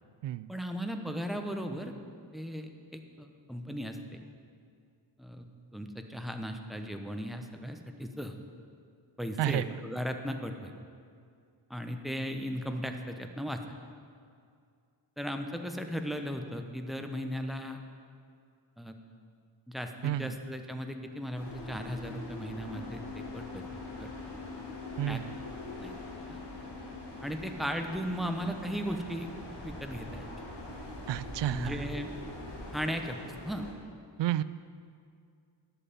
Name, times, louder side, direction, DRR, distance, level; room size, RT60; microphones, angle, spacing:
voice 1, 0.5-1.9 2.3-4.2 5.2-5.5 5.7-8.4 9.2-10.7 11.7-13.6 15.2-17.8 18.8-18.9 19.7-23.6 24.0-24.1 25.1-25.2 25.8-26.0 26.3-26.4 27.2-29.3 29.6-30.3 31.5-32.1 32.7-33.7, equal, ahead, 5 dB, 0.9 m, -36 dB
voice 2, 20.0-20.3 25.0-25.3 31.1-31.8 34.2-34.4, right 13 dB, 75° right, 16 dB, 0.5 m, -30 dB
sound 1, 21.3-33.7, left 1 dB, 65° left, 2.3 m, -43 dB
Wind instrument woodwind instrument, 22.8-28.2, left 8 dB, 30° left, 0.7 m, -47 dB
11.0 x 5.8 x 8.5 m, 2.3 s
cardioid pair, 85°, 44 cm